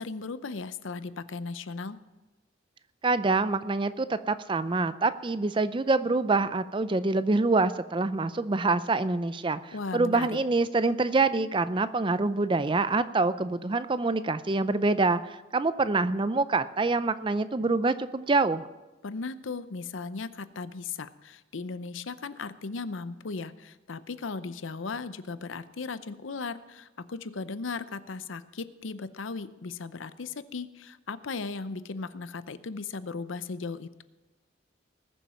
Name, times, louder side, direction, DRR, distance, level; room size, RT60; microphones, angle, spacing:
voice 1, 0.0-2.0 9.7-10.4 19.0-34.0, left 4 dB, 80° left, 14 dB, 0.7 m, -37 dB
voice 2, 3.0-18.7, right 3 dB, 25° right, 14 dB, 0.4 m, -26 dB
20.0 x 7.2 x 5.7 m, 1.1 s
head